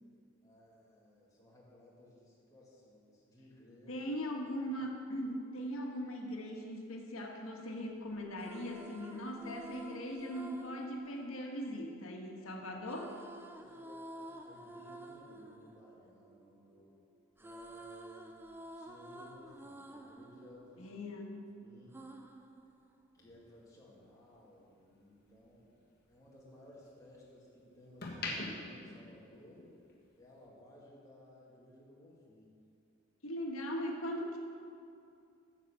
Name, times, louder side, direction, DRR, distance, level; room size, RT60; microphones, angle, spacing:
voice 1, 0.4-4.1 4.6-4.8 13.6-17.0 17.4-21.0 21.6-22.1 23.1-25.7 26.1-29.7 30.2-32.5, left 1 dB, 15° left, -5 dB, 2.1 m, -58 dB
voice 2, 3.9-13.1 20.8-21.4 33.2-34.4, equal, 75° left, 1 dB, 1.5 m, -40 dB
sound 1, 8.2-12.3 12.9-16.9 17.2-21.4 21.9-23.4, right 1 dB, 10° right, 0.4 m, -51 dB
sound 2, 23.2-25.5 25.9-27.3 27.8-29.9 30.2-30.5, left 2 dB, 45° left, 1.5 m, -44 dB
9.6 x 7.6 x 6.7 m, 2.5 s
head